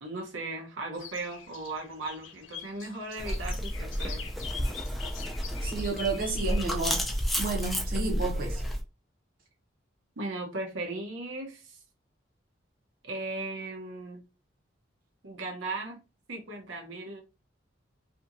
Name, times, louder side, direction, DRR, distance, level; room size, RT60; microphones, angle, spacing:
voice 1, 0.0-4.2 10.2-11.8 13.0-14.2 15.2-16.0 16.3-17.2, right 2 dB, 85° right, 0.8 m, -37 dB
sound 1, 0.9-7.6, left 6 dB, 80° left, 0.6 m, -45 dB
sound 2, 3.2-8.8, equal, ahead, 0.3 m, -31 dB
voice 2, 5.6-8.6, right 3 dB, 45° right, 0.7 m, -32 dB
2.7 x 2.7 x 2.5 m
head